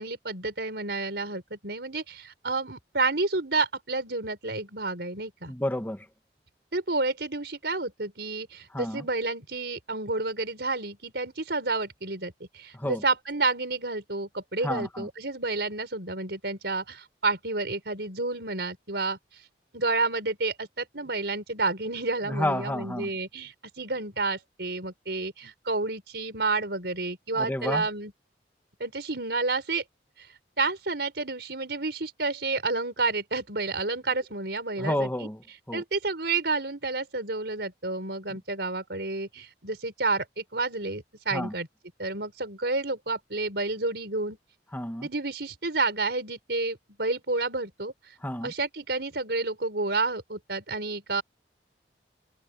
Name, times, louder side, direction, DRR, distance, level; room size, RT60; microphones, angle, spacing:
voice 1, 0.0-5.5 6.7-19.2 19.7-28.1 28.8-29.8 30.6-35.1 35.7-41.7 42.0-44.4 45.0-47.9 48.4-51.2, right 3 dB, 65° right, 5.6 m, -30 dB
voice 2, 5.5-6.1 8.7-9.1 12.7-13.0 14.6-15.1 22.2-23.1 27.3-27.9 34.7-35.8 41.3-41.5 44.7-45.1 48.2-48.5, left 1 dB, 10° left, 1.8 m, -31 dB
head